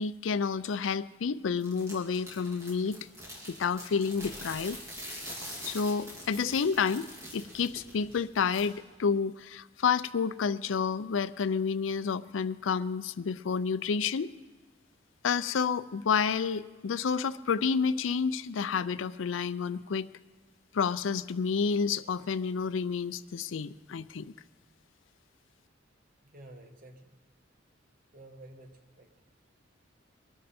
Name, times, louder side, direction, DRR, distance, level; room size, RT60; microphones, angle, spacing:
voice 1, 0.0-3.1 3.5-4.8 5.7-14.3 15.2-20.1 20.7-24.3, left 5 dB, 85° left, 13 dB, 0.5 m, -30 dB
sound 1, 1.6-8.7, equal, 15° right, 3.5 m, -44 dB
voice 2, 26.2-27.1 28.1-29.1, right 1 dB, 45° right, 6 dB, 1.4 m, -51 dB
22.5 x 13.0 x 4.3 m, 1.3 s
head